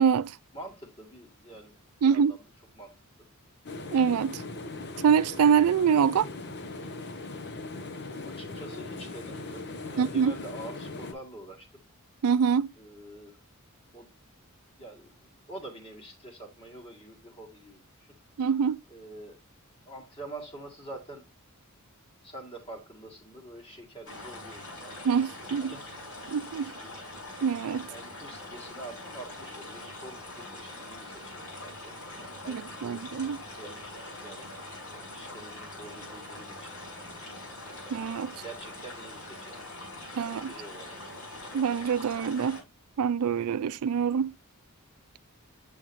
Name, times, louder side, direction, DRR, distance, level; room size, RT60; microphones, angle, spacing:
voice 1, 0.0-0.4 2.0-2.4 3.9-4.4 5.0-6.3 10.0-10.4 12.2-12.7 18.4-18.8 25.0-25.7 26.3-26.7 27.4-27.9 32.5-33.4 37.9-38.3 40.2-40.5 41.5-42.6 43.0-44.3, right 7 dB, 80° right, 0.4 m, -25 dB
voice 2, 0.5-2.4 2.7-2.9 8.2-11.7 12.8-13.4 13.9-14.1 14.8-18.1 18.9-19.4 19.9-21.3 22.2-25.0 25.4-25.8 27.9-33.0 33.6-34.5 35.1-36.8 38.4-39.7 39.9-41.0, right 2 dB, 25° left, 1.8 m, -46 dB
sound 1, 3.6-11.1, left 3 dB, 50° left, 0.9 m, -39 dB
sound 2, 24.1-42.6, left 1 dB, 80° left, 5.2 m, -43 dB
7.3 x 6.4 x 2.6 m
head